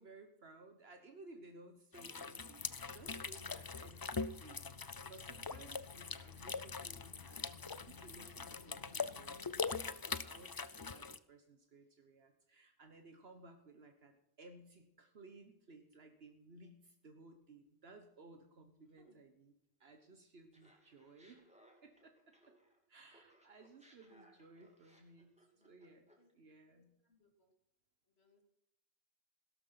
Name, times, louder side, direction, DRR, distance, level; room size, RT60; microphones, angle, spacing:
voice 1, 0.0-4.6 5.0-9.5 10.1-19.5 19.8-21.5 21.8-22.5 22.9-26.9, right 2 dB, 75° right, 6 dB, 1.5 m, -59 dB
sound 1, 1.9-11.2, left 4 dB, 30° left, 0.4 m, -43 dB
sound 2, 2.6-9.9, left 6 dB, 65° left, 1.2 m, -57 dB
voice 2, 19.0-19.3 26.2-26.3 26.7-27.5 28.1-28.4, equal, 85° left, 3 dB, 3.2 m, -70 dB
Laughter, 20.5-22.8 23.1-26.3, right 1 dB, 5° right, 2.9 m, -67 dB
16.5 x 12.0 x 5.9 m, 0.78 s
omnidirectional pair, 1.1 m